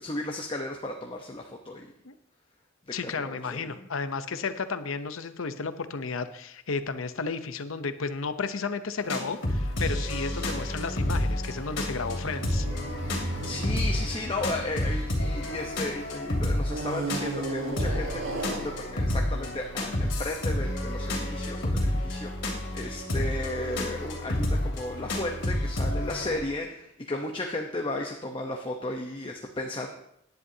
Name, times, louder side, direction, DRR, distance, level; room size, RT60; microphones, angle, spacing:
voice 1, 0.0-1.9 3.0-3.9 13.4-29.9, left 2 dB, 25° left, 1 dB, 0.9 m, -34 dB
voice 2, 2.9-12.7 14.0-14.1, left 4 dB, 80° left, 10 dB, 0.8 m, -33 dB
sound 1, 9.0-26.4, left 1 dB, 65° left, 2.8 m, -30 dB
sound 2, 11.2-15.9 16.6-20.1, right 2 dB, 75° right, 1.4 m, -36 dB
17.5 x 10.5 x 2.8 m, 0.74 s
head